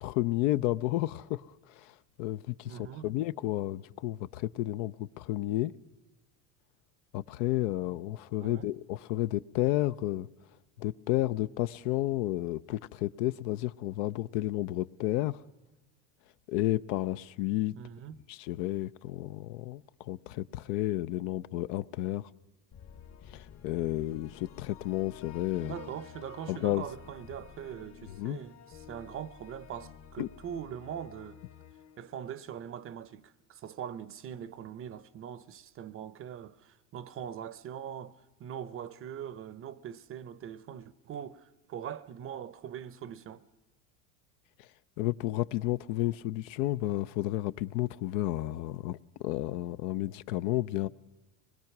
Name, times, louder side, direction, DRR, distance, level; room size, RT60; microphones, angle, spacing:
voice 1, 0.0-5.7 7.1-10.3 10.8-15.4 16.5-17.7 18.3-22.3 23.3-25.7 26.5-26.9 28.2-28.4 30.2-30.3 44.6-44.7 45.0-50.9, left 16 dB, 65° left, 0.6 m, -32 dB
voice 2, 2.6-3.1 8.4-8.7 17.7-18.2 25.6-31.4 32.0-43.4, right 9 dB, 35° right, 0.7 m, -42 dB
sound 1, 22.7-32.9, left 8 dB, 40° left, 1.2 m, -51 dB
25.0 x 21.0 x 5.9 m
supercardioid pair, 120°, 40 cm